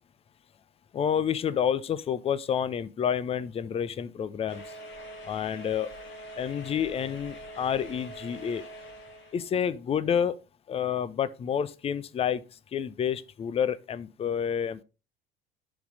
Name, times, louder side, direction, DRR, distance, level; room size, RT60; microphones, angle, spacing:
voice 1, 0.9-4.6 5.2-5.9 6.4-8.6 9.3-10.4 10.7-12.4 12.7-14.8, left 8 dB, 20° left, 0.6 m, -29 dB
sound 1, 4.5-9.5, equal, 40° left, 2.2 m, -44 dB
10.0 x 4.2 x 4.9 m
figure-of-eight pair, 70°, 30 cm